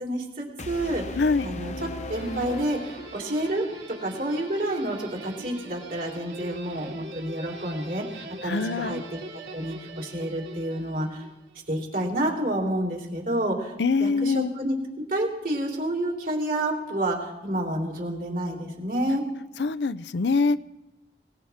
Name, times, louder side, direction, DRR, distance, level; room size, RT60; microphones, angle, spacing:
voice 1, 0.0-1.7 2.1-11.3 11.7-13.7 14.0-14.8 15.1-19.2, right 1 dB, 50° right, -1 dB, 3.5 m, -29 dB
sound 1, 0.6-3.6, left 1 dB, 40° left, 0.9 m, -37 dB
voice 2, 1.2-1.5 8.4-9.0 13.8-14.5 19.6-20.6, left 4 dB, 75° left, 15 dB, 0.5 m, -24 dB
Guitar, 2.1-11.4, right 2 dB, 85° right, 2.7 m, -41 dB
20.5 x 19.5 x 3.6 m, 1.0 s
head